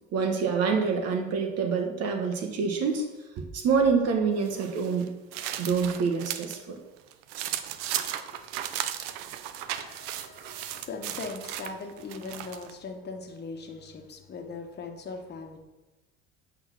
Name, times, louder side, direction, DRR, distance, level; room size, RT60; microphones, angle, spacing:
voice 1, 0.1-3.1 3.4-5.1 5.6-6.8, right 5 dB, 55° right, 4 dB, 1.2 m, -26 dB
sound 1, 4.4-6.6 7.0-12.7, right 11 dB, 80° right, 0.6 m, -36 dB
voice 2, 9.8-15.6, left 4 dB, 35° left, 4 dB, 1.4 m, -40 dB
7.8 x 4.2 x 5.9 m, 1.1 s
supercardioid pair, 90°, 30 cm